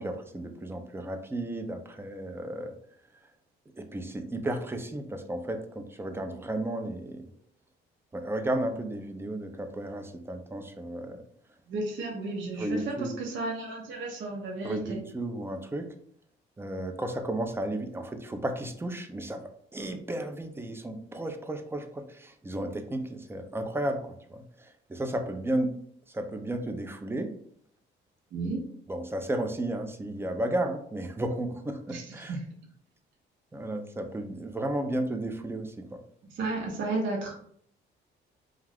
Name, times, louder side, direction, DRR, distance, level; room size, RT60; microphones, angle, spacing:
voice 1, 0.0-2.8 3.8-7.3 8.1-11.2 12.6-13.1 14.6-15.9 16.6-25.7 26.1-27.3 28.9-32.4 33.5-36.0, right 1 dB, 10° right, 6 dB, 0.4 m, -33 dB
voice 2, 11.7-15.0 28.3-28.7 31.9-32.4 36.2-37.3, right 2 dB, 75° right, 0 dB, 0.8 m, -33 dB
2.4 x 2.3 x 3.3 m, 0.63 s
cardioid pair, 90°, 20 cm